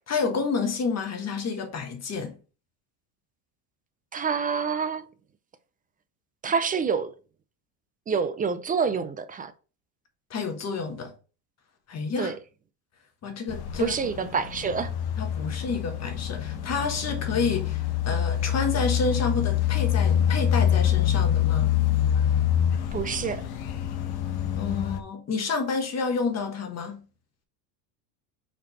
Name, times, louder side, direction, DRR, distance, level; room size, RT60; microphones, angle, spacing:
voice 1, 0.1-2.3 10.3-11.1 11.9-12.3 13.2-14.0 15.2-21.7 24.6-27.0, left 4 dB, 30° left, 1.4 m, -29 dB
voice 2, 4.1-5.0 6.4-7.1 8.1-9.5 12.2-12.4 13.8-14.9 22.9-23.4, right 6 dB, 20° right, 0.4 m, -27 dB
sound 1, 13.5-25.0, left 10 dB, 50° left, 1.0 m, -26 dB
4.9 x 4.6 x 4.2 m
supercardioid pair, 120°, 48 cm